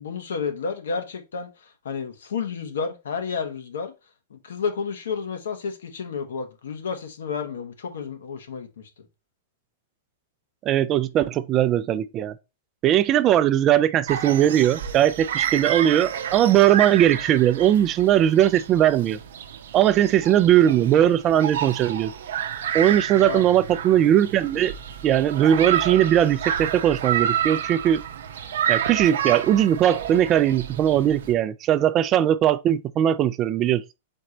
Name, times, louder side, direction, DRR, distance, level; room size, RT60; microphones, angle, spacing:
voice 1, 0.0-3.9 4.3-8.9 23.1-23.5, left 5 dB, 85° left, 1.1 m, -31 dB
voice 2, 10.7-12.3 12.8-19.2 19.7-22.1 22.7-24.7 25.0-28.0 28.7-33.8, right 11 dB, 30° right, 0.3 m, -19 dB
sound 1, 14.1-31.3, right 9 dB, 75° right, 0.6 m, -30 dB
4.3 x 3.2 x 3.8 m
hypercardioid pair, 135°, 0 cm